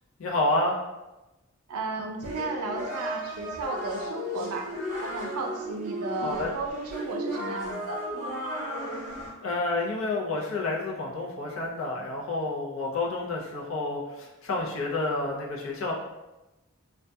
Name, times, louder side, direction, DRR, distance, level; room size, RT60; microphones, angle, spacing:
voice 1, 0.2-0.8 6.2-6.5 9.4-15.9, left 2 dB, 65° left, -2 dB, 0.5 m, -29 dB
voice 2, 1.7-4.7 5.0-8.0, right 3 dB, 90° right, 3 dB, 0.4 m, -34 dB
sound 1, 2.2-9.3, equal, 35° right, 0.7 m, -34 dB
2.6 x 2.2 x 2.2 m, 1.0 s
head